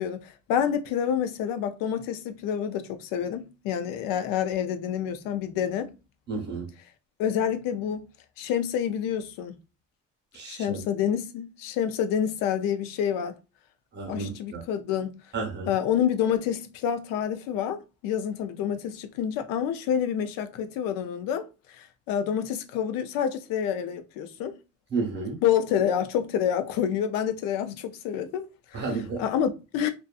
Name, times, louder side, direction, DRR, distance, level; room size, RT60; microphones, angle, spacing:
voice 1, 0.0-5.9 7.2-8.0 8.4-9.6 10.5-13.3 14.1-15.2 15.7-21.5 21.8-24.5 25.4-28.8 29.2-29.9, left 9 dB, 90° left, 0.5 m, -28 dB
voice 2, 6.3-6.7 10.3-10.8 13.9-14.6 15.3-15.7 24.9-25.4 28.7-29.2, right 4 dB, 30° right, 0.9 m, -32 dB
2.6 x 2.3 x 2.3 m
cardioid pair, 165°, 33 cm